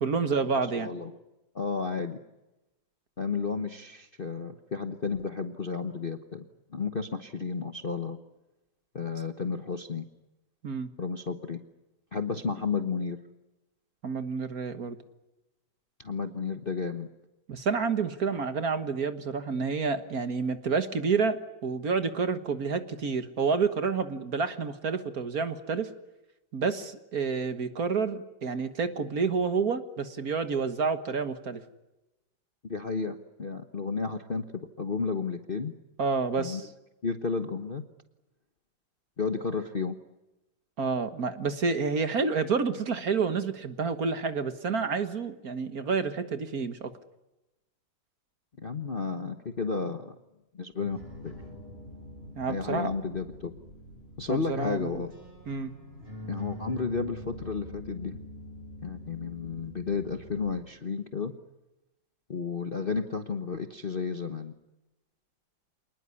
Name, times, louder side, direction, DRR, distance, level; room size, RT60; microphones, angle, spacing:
voice 1, 0.0-0.9 10.6-10.9 14.0-15.0 17.5-25.9 26.5-31.6 36.0-36.7 40.8-46.9 52.4-52.9 54.3-55.0 55.5-55.7, right 5 dB, 50° right, 10 dB, 1.8 m, -29 dB
voice 2, 0.7-1.1 1.5-2.2 3.2-6.4 6.7-8.2 8.9-10.0 11.0-11.6 12.1-13.2 16.0-17.1 32.6-35.7 36.4-36.6 37.0-37.8 39.2-40.0 48.6-50.1 50.5-51.0 51.2-51.3 52.5-53.5 54.2-55.1 56.3-58.2 58.8-61.3 62.3-64.5, left 5 dB, 35° left, 7 dB, 1.0 m, -32 dB
sound 1, 50.8-60.6, equal, 30° right, 7.3 m, -45 dB
27.5 x 20.0 x 9.7 m, 0.99 s
omnidirectional pair, 2.2 m